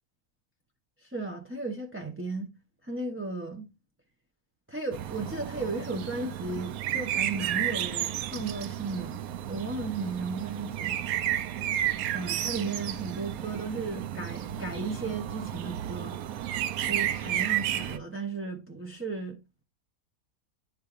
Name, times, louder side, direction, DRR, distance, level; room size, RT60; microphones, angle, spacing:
voice 1, 1.0-2.5 2.8-3.7 4.7-9.2 9.5-11.0 12.1-16.2 16.8-19.4, right 3 dB, 20° right, 0.3 m, -35 dB
sound 1, 4.9-18.0, right 11 dB, 80° right, 1.0 m, -32 dB
10.0 x 4.6 x 2.5 m
omnidirectional pair, 1.5 m